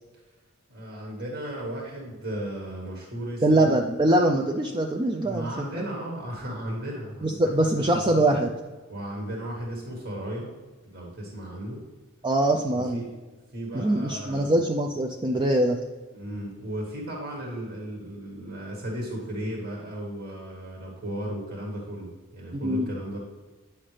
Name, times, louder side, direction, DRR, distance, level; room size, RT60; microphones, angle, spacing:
voice 1, 0.7-3.7 5.2-8.3 8.9-10.5 10.8-11.8 12.7-13.2 13.5-14.5 16.1-23.2, right 1 dB, 50° right, -1 dB, 1.5 m, -35 dB
voice 2, 3.4-5.5 5.7-5.8 7.2-8.5 12.2-13.0 13.7-15.8 22.5-22.9, right 1 dB, 20° right, 2 dB, 0.4 m, -23 dB
8.7 x 5.7 x 3.3 m, 1.3 s
head